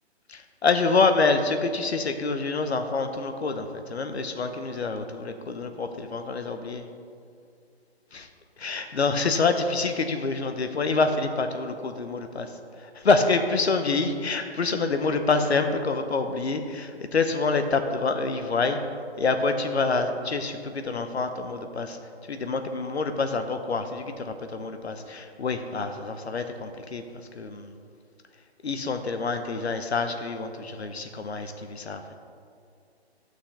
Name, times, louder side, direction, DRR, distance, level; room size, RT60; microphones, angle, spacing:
voice 1, 0.3-6.9 8.1-8.3 8.6-12.5 12.8-18.8 19.2-22.0 22.3-27.0 27.3-27.7 28.6-32.0, left 4 dB, 70° left, 7 dB, 0.9 m, -26 dB
12.5 x 6.3 x 3.4 m, 2.3 s
figure-of-eight pair, 135°, 33 cm